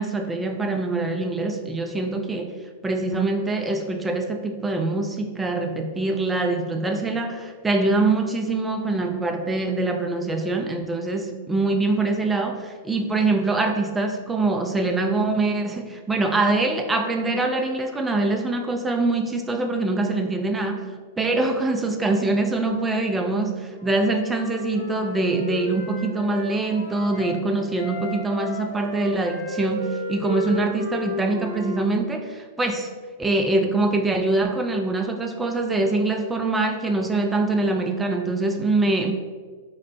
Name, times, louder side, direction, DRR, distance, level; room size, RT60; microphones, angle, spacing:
voice 1, 0.0-2.6 2.8-32.9 33.2-39.1, right 2 dB, 10° right, 5 dB, 0.4 m, -24 dB
Wind instrument woodwind instrument, 23.7-27.4 27.7-31.8, left 1 dB, 45° left, 1.3 m, -34 dB
3.1 x 2.5 x 3.2 m, 1.5 s
hypercardioid pair, 110°, 0 cm